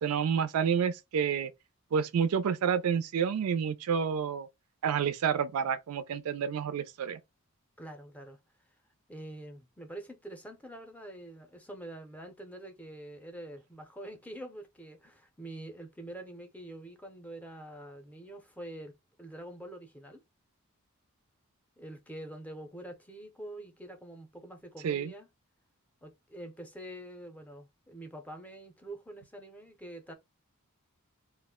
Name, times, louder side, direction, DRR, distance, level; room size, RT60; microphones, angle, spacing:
voice 1, 0.0-1.5 1.9-4.5 4.8-7.2 24.8-25.1, right 7 dB, 85° right, 0.4 m, -29 dB
voice 2, 7.8-8.4 9.1-20.2 21.8-25.3 26.0-30.1, right 1 dB, 5° left, 0.5 m, -45 dB
2.4 x 2.1 x 3.5 m
head